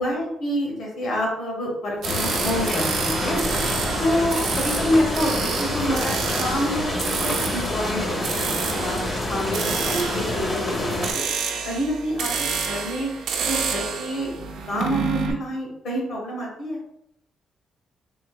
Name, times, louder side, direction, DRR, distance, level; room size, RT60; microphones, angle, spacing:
voice 1, 0.0-3.4 4.0-4.3 4.8-6.9 7.2-11.2 11.6-14.3 14.7-16.8, equal, 60° left, -2 dB, 1.4 m, -27 dB
sound 1, 2.0-11.1, left 1 dB, 30° left, 1.0 m, -27 dB
sound 2, 2.0-15.3, right 5 dB, 80° right, 0.5 m, -29 dB
3.7 x 2.7 x 2.3 m, 0.77 s
cardioid pair, 90°, 0 cm